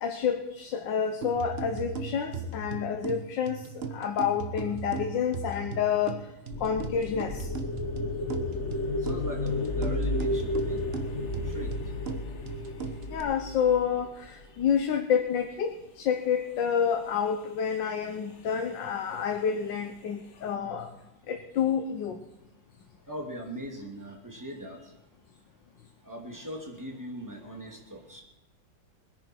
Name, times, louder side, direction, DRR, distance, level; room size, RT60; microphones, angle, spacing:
voice 1, 0.0-3.6 3.9-6.2 6.6-7.5 13.1-20.9 21.3-22.2, left 7 dB, 85° left, 4 dB, 1.7 m, -29 dB
sound 1, 1.2-13.2, right 4 dB, 40° right, 1.1 m, -38 dB
sound 2, 6.5-14.7, left 2 dB, 45° left, 1.3 m, -32 dB
voice 2, 9.0-10.9 11.1-11.7 23.1-24.8 26.0-28.2, equal, 10° right, 0 dB, 2.4 m, -40 dB
21.5 x 10.0 x 4.5 m, 0.94 s
omnidirectional pair, 1.9 m